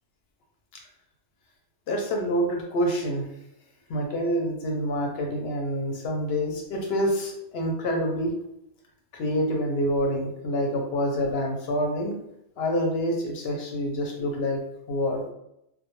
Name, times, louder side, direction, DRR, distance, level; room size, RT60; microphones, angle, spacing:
voice 1, 1.9-3.3 3.9-8.3 9.1-12.2 12.6-14.6 14.9-15.2, equal, 65° left, 1 dB, 0.7 m, -27 dB
2.2 x 2.1 x 2.9 m, 0.82 s
omnidirectional pair, 1.3 m